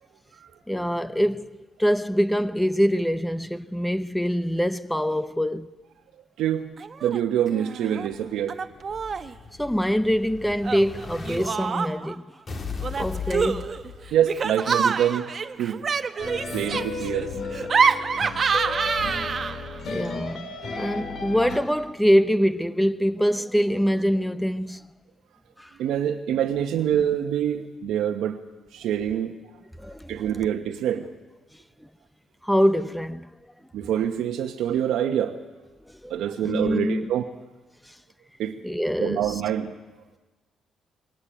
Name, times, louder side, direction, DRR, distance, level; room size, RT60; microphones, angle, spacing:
voice 1, 0.7-1.5 1.8-5.7 9.6-12.3 13.0-13.8 16.7-16.9 19.9-24.9 25.6-25.7 29.8-30.2 31.8-31.9 32.4-33.3 35.9-37.1 37.8-38.0 38.6-39.4, equal, 5° left, 0.8 m, -24 dB
voice 2, 6.4-6.7 7.0-8.6 14.1-15.8 16.5-17.3 20.0-20.1 25.8-28.4 28.7-29.4 30.1-31.1 33.7-35.4 36.1-37.3 38.4-38.6 39.0-39.8, right 10 dB, 85° right, 1.1 m, -25 dB
Laughter, 6.8-7.2 7.5-8.1 8.5-9.3 10.6-12.2 12.8-19.8, right 5 dB, 45° right, 1.0 m, -27 dB
Explosion, 8.1-11.5 12.5-14.5, left 5 dB, 40° left, 2.6 m, -37 dB
sound 1, 16.2-21.6, left 4 dB, 60° left, 3.9 m, -34 dB
22.5 x 18.5 x 9.1 m
cardioid pair, 90°, 0 cm